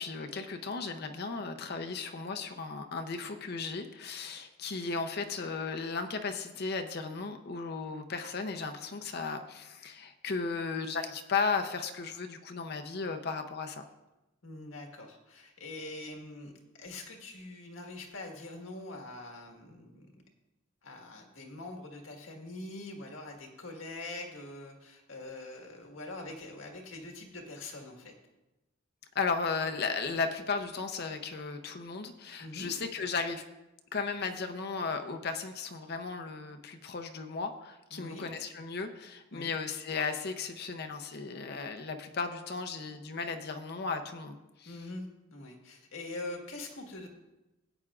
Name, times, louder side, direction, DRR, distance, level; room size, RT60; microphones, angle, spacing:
voice 1, 0.0-13.8 29.1-33.4 33.9-44.8, left 4 dB, 50° left, 6 dB, 0.7 m, -35 dB
voice 2, 14.4-20.2 20.8-28.1 32.4-32.7 37.9-38.2 39.3-39.5 44.6-47.1, left 2 dB, 85° left, 1 dB, 1.7 m, -44 dB
16.5 x 8.8 x 2.5 m, 1.0 s
head